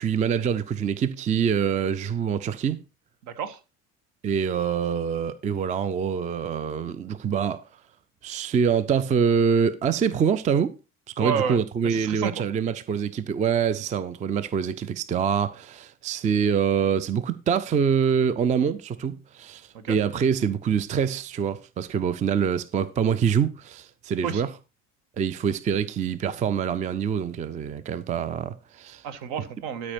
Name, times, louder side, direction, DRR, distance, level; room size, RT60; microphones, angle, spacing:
voice 1, 0.0-2.8 4.2-7.6 8.2-10.7 11.2-24.5 25.2-29.0, right 7 dB, 15° right, 0.5 m, -25 dB
voice 2, 3.2-3.6 11.2-11.6 11.8-12.4 19.7-20.0 24.2-24.4 29.0-29.9, right 7 dB, 55° right, 1.5 m, -30 dB
13.0 x 5.3 x 4.4 m
figure-of-eight pair, 65°, 47 cm